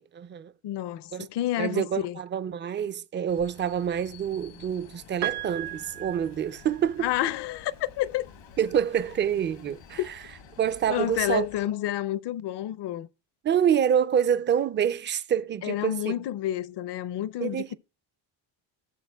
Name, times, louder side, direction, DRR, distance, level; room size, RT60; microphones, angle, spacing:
voice 1, 0.0-0.5 1.1-1.3 1.6-7.1 8.6-10.2 10.6-11.5 13.4-16.1 17.4-17.7, right 8 dB, 25° right, 0.4 m, -27 dB
voice 2, 0.6-2.2 7.0-8.3 10.9-13.1 15.6-17.7, left 13 dB, 65° left, 0.6 m, -29 dB
sound 1, 3.3-11.7, left 7 dB, 90° left, 1.5 m, -50 dB
Piano, 5.2-7.2 8.5-8.6, right 14 dB, 60° right, 0.7 m, -36 dB
16.5 x 6.6 x 2.3 m
cardioid pair, 90°, 45 cm